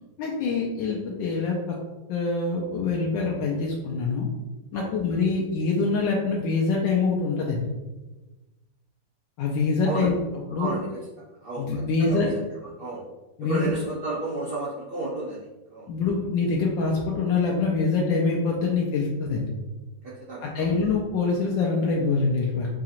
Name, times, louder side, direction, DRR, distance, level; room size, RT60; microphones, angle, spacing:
voice 1, 0.2-1.7 2.1-4.3 4.7-7.6 9.4-10.2 10.5-10.8 11.6-12.3 13.4-13.7 15.9-19.5 20.4-22.7, left 4 dB, 85° left, -2 dB, 1.3 m, -25 dB
voice 2, 11.2-12.4 12.8-13.0 13.5-15.4 15.7-15.9 20.0-20.7, right 2 dB, 80° right, -7 dB, 0.5 m, -32 dB
4.9 x 2.8 x 2.4 m, 1.1 s
omnidirectional pair, 1.9 m